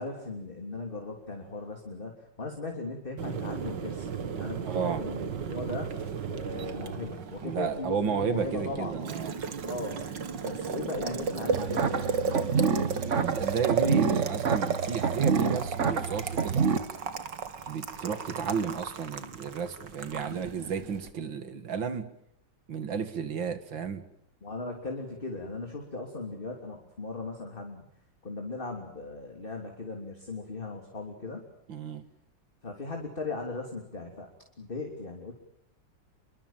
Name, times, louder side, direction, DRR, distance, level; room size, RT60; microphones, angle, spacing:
voice 1, 0.0-4.1 4.3-9.0 9.7-10.0 10.4-12.2 24.4-27.9 28.2-31.4 32.6-34.3 34.6-35.3, left 3 dB, 25° left, 2 dB, 3.4 m, -38 dB
Boiling, 3.2-21.1, right 6 dB, 70° right, 2.4 m, -35 dB
voice 2, 4.6-5.0 7.4-9.3 13.2-16.7 17.7-22.1 22.7-24.0 31.7-32.0, right 6 dB, 90° right, 11 dB, 2.6 m, -32 dB
sound 1, 11.5-16.8, right 6 dB, 45° right, 1.6 m, -27 dB
28.5 x 24.0 x 7.4 m, 0.73 s
omnidirectional pair, 2.0 m